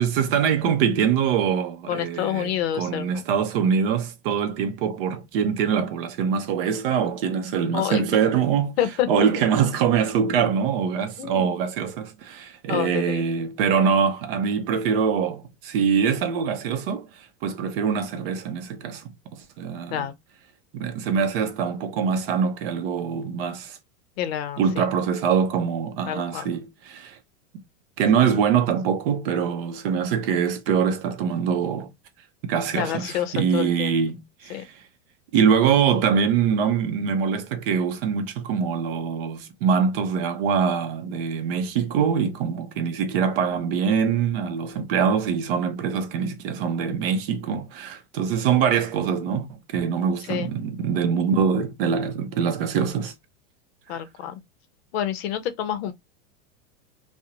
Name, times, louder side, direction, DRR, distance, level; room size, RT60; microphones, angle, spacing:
voice 1, 0.0-8.8 9.1-17.1 17.4-19.0 19.3-20.1 20.7-23.8 24.6-27.2 28.0-31.9 32.4-34.7 35.3-53.1 53.9-54.0, right 7 dB, 55° right, 0.6 m, -24 dB
voice 2, 1.9-3.2 7.7-8.0 8.8-9.3 11.2-11.5 12.7-13.2 19.9-20.1 24.2-24.9 26.1-26.6 28.2-28.3 28.5-28.6 32.7-34.0 34.5-34.6 48.3-48.5 50.3-50.5 53.9-54.4 54.9-55.9, left 10 dB, 60° left, 0.6 m, -28 dB
2.5 x 2.0 x 2.7 m
supercardioid pair, 165°, 35 cm